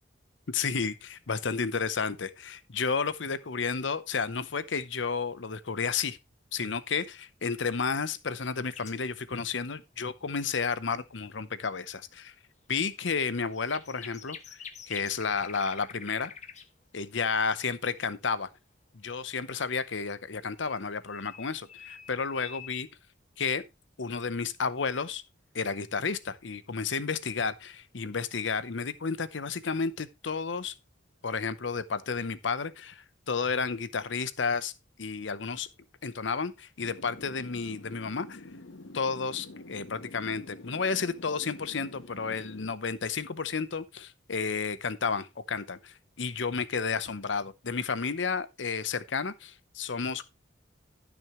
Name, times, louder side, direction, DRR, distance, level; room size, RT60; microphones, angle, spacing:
voice 1, 0.5-6.2 6.5-12.3 12.7-14.6 14.9-16.3 16.9-18.5 18.9-22.9 23.4-23.6 24.0-25.2 25.5-30.7 31.2-34.7 35.0-35.7 36.0-38.4 38.9-50.2, left 5 dB, 70° left, 0.8 m, -32 dB
sound 1, 8.6-9.1 13.1-16.7 20.6-22.7, left 7 dB, 40° left, 1.0 m, -46 dB
sound 2, 36.8-42.7, left 2 dB, 90° left, 1.1 m, -47 dB
14.0 x 6.2 x 3.1 m
head